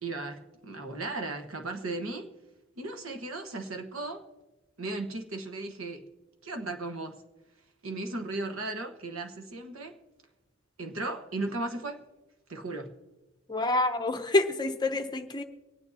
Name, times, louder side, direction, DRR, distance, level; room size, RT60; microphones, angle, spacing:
voice 1, 0.0-2.3 2.8-4.2 4.8-6.0 6.4-7.2 7.8-10.0 10.8-12.0 12.5-12.9, right 2 dB, 85° right, 1.2 m, -36 dB
voice 2, 13.5-15.4, left 2 dB, 20° left, 0.7 m, -27 dB
24.5 x 9.5 x 2.8 m
head